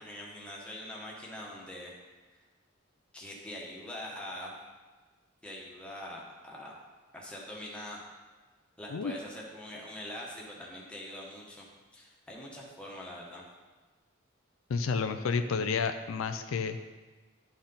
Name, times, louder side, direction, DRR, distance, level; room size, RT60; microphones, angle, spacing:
voice 1, 0.0-1.9 3.1-4.6 5.4-6.8 7.1-8.0 8.8-11.7 11.9-13.4 16.4-16.6, left 1 dB, 5° left, -3 dB, 1.2 m, -43 dB
voice 2, 14.7-16.8, left 5 dB, 75° left, 9 dB, 0.4 m, -30 dB
11.5 x 4.2 x 3.9 m, 1.3 s
head